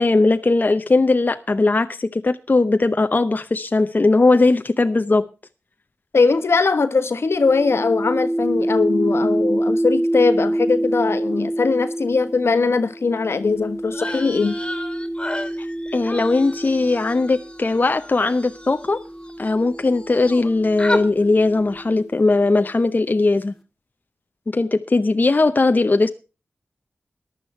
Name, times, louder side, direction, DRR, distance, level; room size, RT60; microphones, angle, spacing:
voice 1, 0.0-5.2 15.9-19.0 19.4-23.5 24.5-26.1, left 3 dB, 40° left, 0.7 m, -19 dB
voice 2, 6.1-14.6, left 4 dB, 75° left, 1.2 m, -20 dB
sound 1, 7.3-17.7 18.6-22.4, right 1 dB, ahead, 2.3 m, -27 dB
sound 2, 13.9-19.5 19.8-20.5 20.8-21.0, left 1 dB, 20° left, 2.5 m, -33 dB
14.5 x 11.0 x 4.4 m
wide cardioid pair, 55°, 4 cm